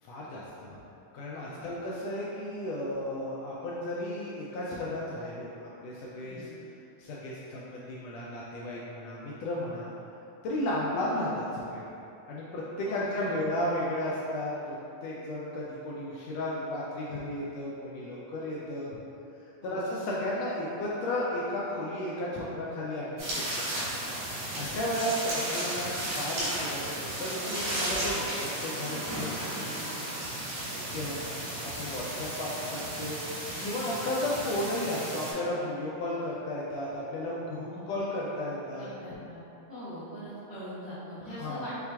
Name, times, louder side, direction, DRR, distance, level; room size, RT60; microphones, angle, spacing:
voice 1, 0.0-0.8 1.1-6.5 7.0-9.9 10.4-11.8 12.3-14.8 15.0-18.9 19.6-23.4 23.9-24.0 24.5-26.8 27.2-29.3 30.9-31.2 31.8-33.2 33.6-38.9 41.4-41.6, left 1 dB, 80° left, -6 dB, 1.6 m, -34 dB
voice 2, 12.9-13.4 19.6-19.8 25.0-25.1 29.2-30.1 30.8-30.9 31.3-31.5 37.7-37.9 38.8-39.4 39.7-41.7, equal, 55° right, -16 dB, 1.0 m, -42 dB
sound 1, 23.2-35.3, right 1 dB, 80° right, 2.8 m, -34 dB
5.8 x 2.4 x 3.3 m, 2.8 s
omnidirectional pair, 3.3 m